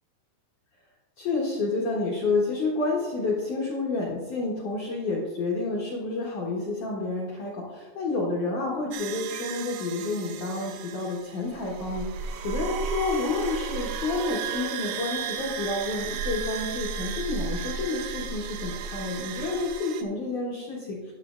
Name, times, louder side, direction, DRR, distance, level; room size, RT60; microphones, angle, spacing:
voice 1, 1.2-21.1, left 3 dB, 65° left, -4 dB, 2.0 m, -29 dB
sound 1, 8.9-20.0, right 6 dB, 85° right, 3.1 m, -34 dB
13.0 x 10.5 x 2.5 m, 1.3 s
omnidirectional pair, 5.2 m